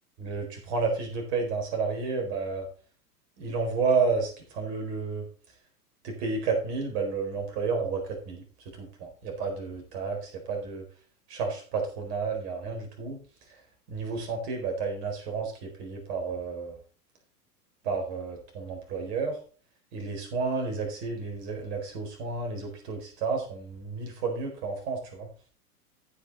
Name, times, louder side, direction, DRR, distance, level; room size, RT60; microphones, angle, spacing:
voice 1, 0.2-2.6 3.4-5.2 6.0-8.4 8.8-10.8 11.3-13.2 13.5-13.6 13.9-16.8 17.8-19.4 19.9-25.3, right 4 dB, 45° right, 2 dB, 4.4 m, -31 dB
15.0 x 5.9 x 4.0 m, 0.39 s
figure-of-eight pair, 95°, 46 cm